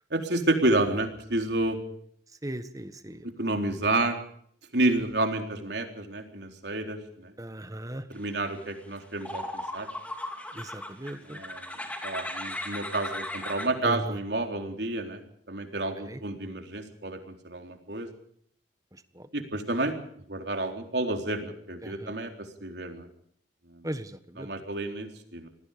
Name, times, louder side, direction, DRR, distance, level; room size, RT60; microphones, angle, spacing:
voice 1, 0.1-1.8 3.4-4.2 4.7-7.3 8.1-9.9 11.2-11.7 12.0-15.2 15.5-18.1 19.3-19.9 20.3-22.3 22.6-23.1 23.7-23.8 24.4-25.5, right 2 dB, 75° right, 4 dB, 3.9 m, -30 dB
voice 2, 2.4-3.2 7.4-8.0 10.5-11.4 13.8-14.1 16.1-16.2 19.1-19.3 21.8-22.1 23.8-24.5, right 1 dB, 20° right, 11 dB, 1.5 m, -37 dB
sound 1, 8.6-8.7 9.2-13.7, left 1 dB, 10° left, 3.0 m, -36 dB
27.5 x 19.5 x 5.1 m, 0.64 s
head